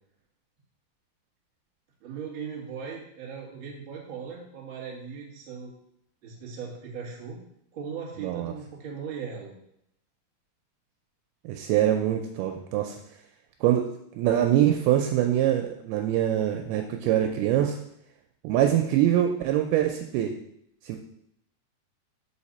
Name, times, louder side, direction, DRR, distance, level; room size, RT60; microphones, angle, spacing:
voice 1, 2.0-5.7 6.2-7.4 7.7-9.6, right 6 dB, 40° right, -4 dB, 2.1 m, -38 dB
voice 2, 8.2-8.5 11.5-13.0 13.6-13.8 14.2-17.8 18.4-20.3 20.8-21.0, right 11 dB, 80° right, 3 dB, 2.4 m, -24 dB
5.7 x 5.0 x 4.2 m, 0.73 s
omnidirectional pair, 4.6 m